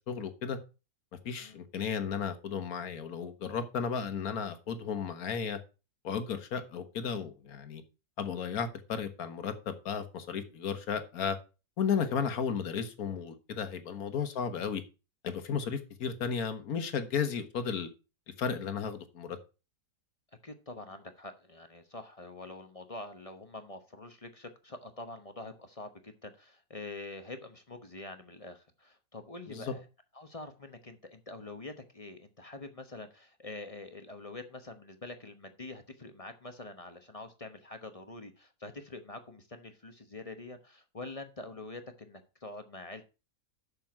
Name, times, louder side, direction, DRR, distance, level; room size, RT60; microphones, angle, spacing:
voice 1, 0.1-0.6 1.2-5.6 6.0-7.8 8.2-11.4 11.8-14.8 15.2-17.9 18.4-19.4 29.5-29.7, left 6 dB, 65° left, 1.6 m, -34 dB
voice 2, 20.4-29.8 30.1-43.0, left 2 dB, 25° left, 0.9 m, -45 dB
7.5 x 6.8 x 5.9 m
omnidirectional pair, 1.7 m